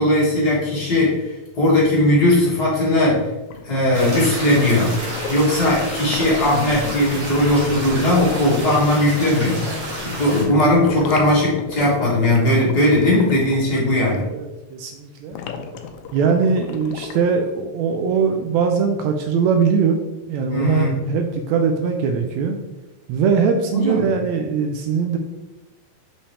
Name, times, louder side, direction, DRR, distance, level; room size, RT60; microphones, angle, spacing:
voice 1, 0.0-3.3 3.6-5.0 5.3-9.6 10.0-14.3 20.5-20.9 23.7-24.1, left 1 dB, 35° left, -7 dB, 2.3 m, -18 dB
sound 1, 3.5-14.3 15.3-17.2, left 5 dB, 80° left, 1.8 m, -35 dB
sound 2, 3.9-10.4, right 1 dB, 50° right, 3.1 m, -31 dB
sound 3, 4.0-10.0, left 2 dB, 60° left, 2.1 m, -35 dB
voice 2, 13.7-15.4 16.1-20.0 20.3-22.6 23.1-25.2, right 6 dB, 80° right, 4 dB, 1.7 m, -21 dB
5.6 x 5.5 x 3.4 m, 1.0 s
omnidirectional pair, 3.4 m